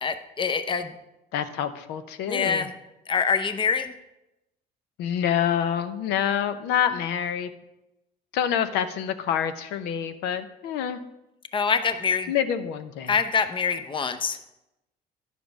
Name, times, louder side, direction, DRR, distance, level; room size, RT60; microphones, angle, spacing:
voice 1, 0.0-1.0 2.3-2.7 3.1-3.9 11.5-12.3 13.1-14.4, left 6 dB, 30° left, 10 dB, 0.7 m, -25 dB
voice 2, 1.3-2.7 5.0-7.5 8.3-11.0 12.3-13.1, left 9 dB, 90° left, 10 dB, 0.7 m, -27 dB
11.0 x 5.1 x 6.2 m, 0.92 s
cardioid pair, 110°, 17 cm